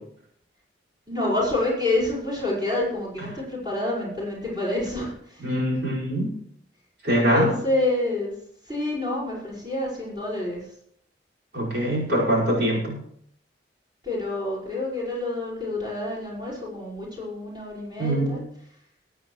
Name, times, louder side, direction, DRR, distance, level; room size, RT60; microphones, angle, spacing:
voice 1, 1.1-5.4 7.1-8.3 8.7-10.6 14.0-18.4, left 2 dB, 25° right, -6 dB, 5.3 m, -28 dB
voice 2, 5.4-6.3 7.0-7.6 11.5-13.0 18.0-18.5, right 1 dB, 75° right, -5 dB, 5.3 m, -23 dB
21.5 x 9.3 x 3.2 m, 0.68 s
head